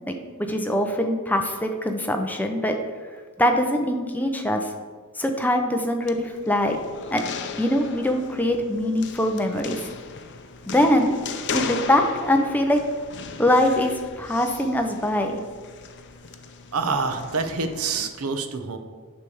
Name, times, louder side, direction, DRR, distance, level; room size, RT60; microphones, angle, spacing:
voice 1, 0.4-2.8 3.4-4.7 5.2-6.8 7.1-7.2 7.6-9.9 10.7-11.1 11.5-12.8 13.4-15.4, left 1 dB, 10° left, 4 dB, 0.6 m, -23 dB
sound 1, 6.0-18.1, left 5 dB, 55° left, 0.6 m, -37 dB
voice 2, 16.7-18.8, right 4 dB, 80° right, 7 dB, 0.8 m, -26 dB
9.8 x 3.4 x 7.0 m, 1.5 s
head